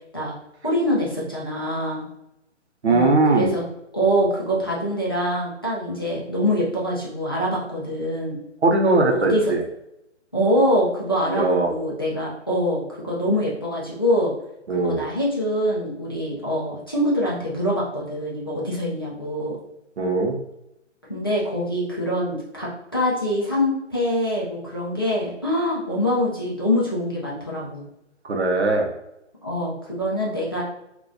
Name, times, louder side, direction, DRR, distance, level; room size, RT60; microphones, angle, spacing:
voice 1, 0.6-2.1 2.8-8.4 9.1-9.4 10.3-14.3 14.8-19.6 21.1-27.8 29.4-30.6, equal, 20° left, -6 dB, 0.4 m, -24 dB
voice 2, 2.8-3.5 8.6-9.6 11.3-11.7 14.7-15.0 20.0-20.4 28.2-28.9, right 2 dB, 60° right, 3 dB, 0.7 m, -20 dB
3.8 x 2.4 x 2.6 m, 0.86 s
figure-of-eight pair, 145°, 37 cm